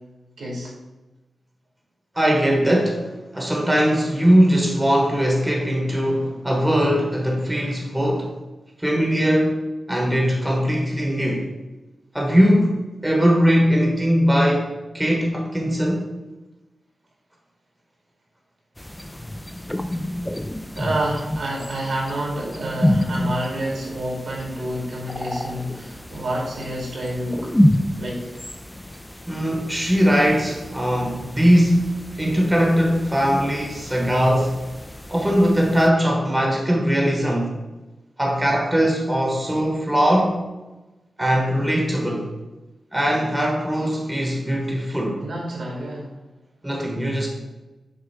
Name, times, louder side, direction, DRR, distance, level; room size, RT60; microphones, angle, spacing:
voice 1, 0.4-0.7 20.7-27.5 28.0-28.3 45.2-46.1, right 1 dB, 65° right, -2 dB, 2.3 m, -28 dB
voice 2, 2.1-3.1 3.3-8.3 8.8-9.5 9.9-11.5 12.1-12.7 13.0-16.0 29.3-34.6 35.1-37.5 38.2-40.4 41.2-42.3 42.9-45.2 46.6-47.3, equal, 10° right, 0 dB, 1.0 m, -20 dB
sound 1, 18.8-35.9, equal, 10° left, 0.3 m, -28 dB
6.4 x 3.5 x 5.8 m, 1.1 s
wide cardioid pair, 140°, 0 cm